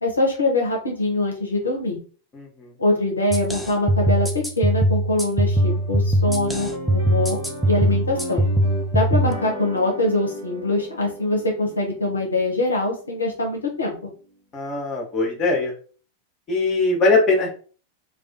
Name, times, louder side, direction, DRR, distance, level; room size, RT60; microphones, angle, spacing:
voice 1, 0.0-2.0 2.8-8.5 8.9-13.9, left 2 dB, 75° left, 0 dB, 0.5 m, -23 dB
voice 2, 2.3-2.7 14.5-15.7 16.5-17.5, left 3 dB, 30° left, 1 dB, 0.8 m, -21 dB
sound 1, 3.3-9.3, equal, ahead, 0.4 m, -21 dB
sound 2, 5.5-14.0, equal, 85° right, 1.1 m, -37 dB
2.3 x 2.2 x 2.5 m, 0.39 s
figure-of-eight pair, 90°, 0 cm